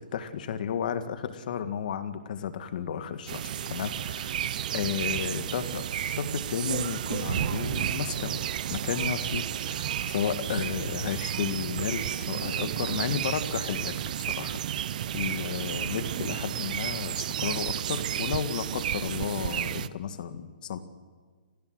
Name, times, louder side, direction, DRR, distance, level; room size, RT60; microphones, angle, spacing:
voice 1, 0.1-4.4 4.7-8.4 8.7-20.8, left 8 dB, 55° left, 10 dB, 1.8 m, -33 dB
sound 1, 3.3-19.9, right 10 dB, 50° right, 0.7 m, -32 dB
29.0 x 15.5 x 7.9 m, 1.5 s
hypercardioid pair, 155°, 5 cm